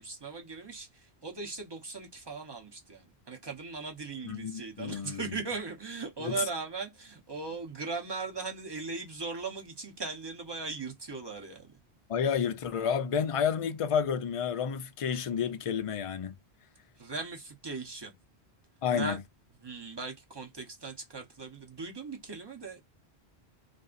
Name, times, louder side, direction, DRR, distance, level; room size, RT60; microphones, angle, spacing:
voice 1, 0.0-11.7 17.0-18.2 18.9-19.2 19.5-22.8, right 4 dB, 25° right, 0.9 m, -39 dB
voice 2, 4.2-5.3 6.2-6.5 12.1-16.3 18.8-19.2, left 7 dB, 60° left, 0.3 m, -30 dB
2.6 x 2.6 x 2.4 m
omnidirectional pair, 1.1 m